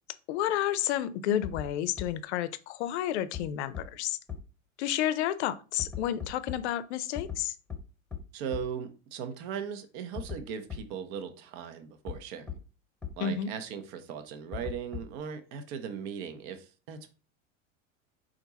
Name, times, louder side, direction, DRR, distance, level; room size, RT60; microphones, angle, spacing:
voice 1, 0.3-4.2 4.8-7.6 13.2-13.5, left 11 dB, 55° left, 0.5 m, -31 dB
sound 1, 1.4-1.7 2.0-2.1 3.3-3.4 3.7-3.8 4.3-4.4 5.8-6.6 7.2-7.4 7.7-7.8 8.1-8.2 8.5-8.6 10.2-10.4 10.7-10.8 12.1-12.2 12.5-12.6 13.0-13.1 14.5-15.2, left 8 dB, 5° left, 1.1 m, -37 dB
voice 2, 8.3-12.5 13.2-17.1, right 7 dB, 50° right, 0.8 m, -38 dB
4.5 x 2.5 x 4.0 m
figure-of-eight pair, 75°, 40 cm